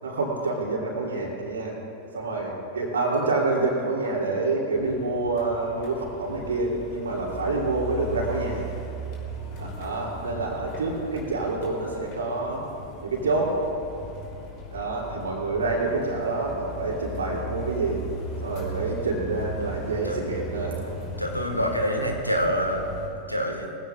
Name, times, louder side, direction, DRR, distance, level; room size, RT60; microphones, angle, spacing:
voice 1, 0.0-1.8 2.1-8.7 9.6-12.6 13.0-13.5 14.7-18.0 18.4-20.8 21.5-21.8, right 3 dB, 70° right, -2 dB, 3.3 m, -27 dB
sound 1, 4.7-23.1, equal, 45° left, 3.4 m, -37 dB
voice 2, 21.2-23.7, equal, 90° left, 3 dB, 1.6 m, -26 dB
22.0 x 15.5 x 2.5 m, 2.7 s
figure-of-eight pair, 90°, 0 cm